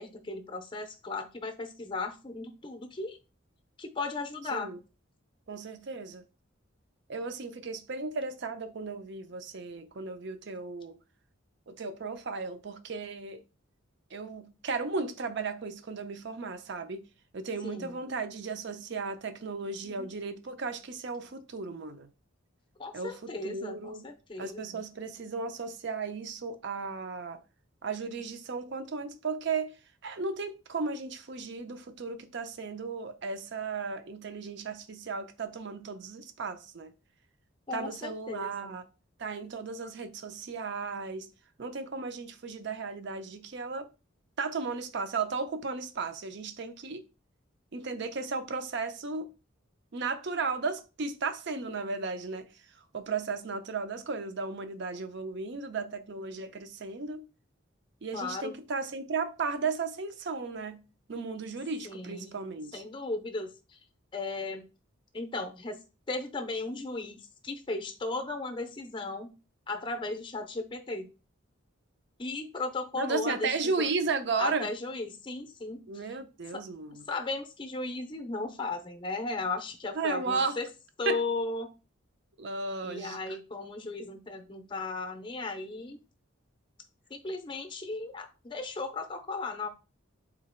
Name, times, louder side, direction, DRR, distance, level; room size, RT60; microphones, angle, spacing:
voice 1, 0.0-3.2 3.8-4.7 17.6-18.0 20.0-20.1 22.8-24.8 37.7-38.8 58.1-58.5 61.8-63.8 64.1-64.7 65.1-65.8 66.1-69.3 69.7-71.1 72.2-73.9 74.4-76.1 76.5-76.6 77.1-80.7 81.0-81.7 82.8-86.0 87.1-89.7, left 3 dB, 25° left, 0.5 m, -36 dB
voice 2, 5.5-6.2 7.1-11.0 11.7-13.4 14.1-17.0 17.3-22.1 22.9-24.0 24.4-27.4 27.8-29.7 30.0-36.9 37.7-38.8 39.2-41.3 41.6-43.9 44.4-47.1 47.7-49.3 49.9-52.5 52.9-57.3 58.0-60.8 61.1-62.8 72.9-74.7 75.9-77.0 79.9-80.6 81.1-81.2 82.4-83.2, right 4 dB, 55° right, 0.5 m, -35 dB
3.8 x 2.9 x 4.3 m
head